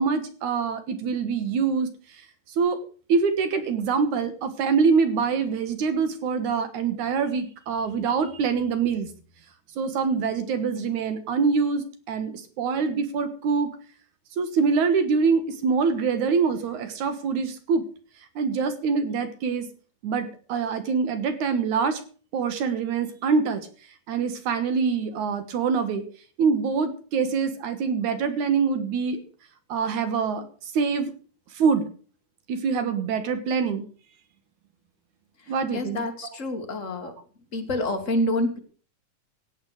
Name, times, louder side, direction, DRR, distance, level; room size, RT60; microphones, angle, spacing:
voice 1, 0.0-1.9 2.6-2.8 3.1-9.1 9.8-13.7 14.4-17.8 18.4-19.7 20.0-22.0 22.3-23.6 24.1-26.0 26.4-29.2 29.7-30.4 30.7-31.1 31.6-31.9 32.5-33.8 35.5-36.1, right 5 dB, 75° right, 10 dB, 2.9 m, -24 dB
voice 2, 35.7-37.1 37.5-38.6, left 1 dB, 30° left, 4 dB, 2.0 m, -27 dB
16.5 x 8.3 x 6.5 m, 0.42 s
omnidirectional pair, 3.5 m